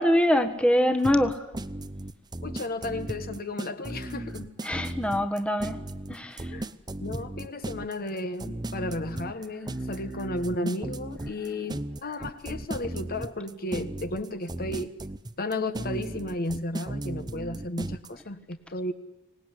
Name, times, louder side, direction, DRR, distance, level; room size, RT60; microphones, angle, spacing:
voice 1, 0.0-1.5 4.6-5.8 6.1-6.5, equal, 5° left, 1.4 m, -24 dB
sound 1, 1.0-18.1, right 1 dB, 20° right, 0.8 m, -36 dB
voice 2, 2.4-4.5 6.5-6.6 7.0-15.0 15.4-18.9, left 1 dB, 45° left, 1.4 m, -33 dB
25.0 x 19.0 x 10.0 m
head